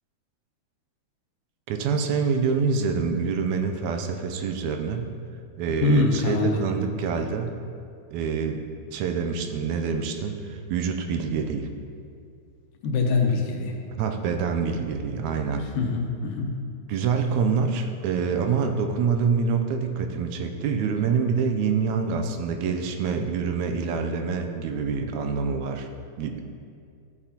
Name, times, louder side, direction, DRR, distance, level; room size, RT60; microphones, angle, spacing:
voice 1, 1.7-5.1 5.6-7.6 8.1-11.7 14.0-15.7 16.9-25.9 26.2-26.4, right 5 dB, 80° right, 5 dB, 1.9 m, -26 dB
voice 2, 5.7-6.6 12.8-13.8 15.6-16.6, left 3 dB, 80° left, 1 dB, 2.4 m, -24 dB
12.5 x 6.9 x 2.9 m, 2.3 s
omnidirectional pair, 3.4 m